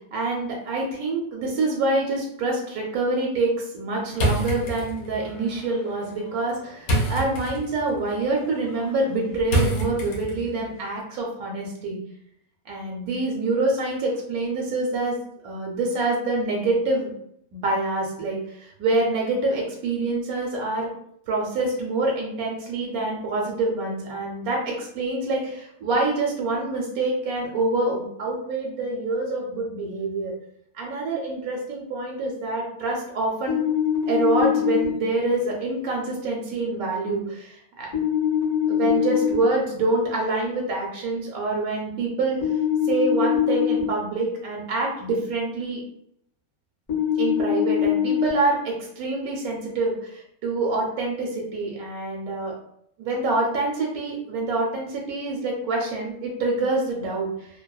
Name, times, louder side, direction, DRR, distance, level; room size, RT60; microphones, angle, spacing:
voice 1, 0.1-12.0 12.7-15.2 15.4-17.1 17.5-20.9 21.3-30.3 30.7-33.6 34.1-37.9 38.7-42.5 42.8-45.8 47.2-52.5 53.0-57.5, right 2 dB, 80° right, -1 dB, 1.0 m, -26 dB
sound 1, 4.1-10.6, right 1 dB, 85° left, 1.1 m, -29 dB
sound 2, 33.5-34.8 37.9-39.3 42.4-43.8 46.9-48.3, left 9 dB, 45° left, 0.5 m, -22 dB
2.6 x 2.1 x 2.2 m, 0.70 s
omnidirectional pair, 1.5 m